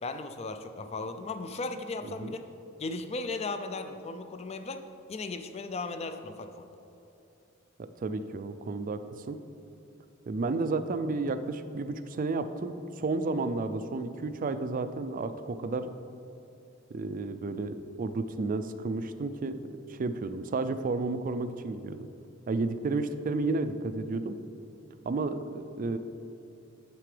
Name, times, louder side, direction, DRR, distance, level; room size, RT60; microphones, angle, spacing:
voice 1, 0.0-2.4 2.8-4.8 5.1-6.7, left 3 dB, 30° left, 8 dB, 0.4 m, -36 dB
voice 2, 7.8-9.4 10.3-15.9 16.9-19.6 19.9-22.1 22.5-24.4 25.0-26.0, right 3 dB, 40° right, 10 dB, 0.4 m, -32 dB
9.3 x 7.6 x 3.3 m, 2.8 s
head